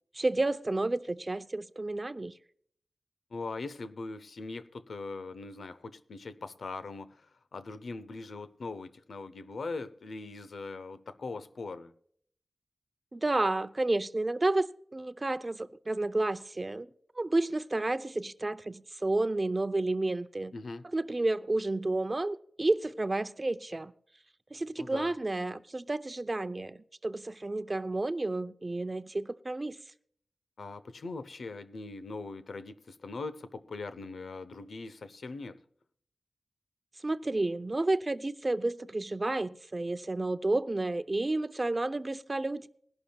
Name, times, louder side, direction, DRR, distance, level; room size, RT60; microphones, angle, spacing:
voice 1, 0.1-2.3 13.1-14.7 14.9-16.9 17.2-20.5 20.9-23.9 24.5-29.8 37.0-42.7, right 2 dB, 35° right, 0.6 m, -31 dB
voice 2, 3.3-11.9 20.5-20.8 24.8-25.1 30.6-35.6, left 3 dB, 80° left, 0.8 m, -41 dB
21.0 x 11.5 x 2.3 m
wide cardioid pair, 65°, 0 cm